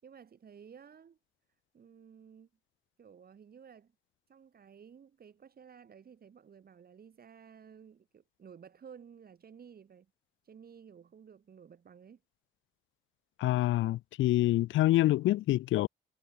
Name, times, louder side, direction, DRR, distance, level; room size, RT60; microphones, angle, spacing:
voice 1, 0.0-1.2 1.7-2.5 3.0-3.9 4.3-10.1 10.4-12.2, right 7 dB, 50° right, 7.2 m, -54 dB
voice 2, 13.4-15.9, left 15 dB, 75° left, 0.5 m, -26 dB
cardioid pair, 90°, 20 cm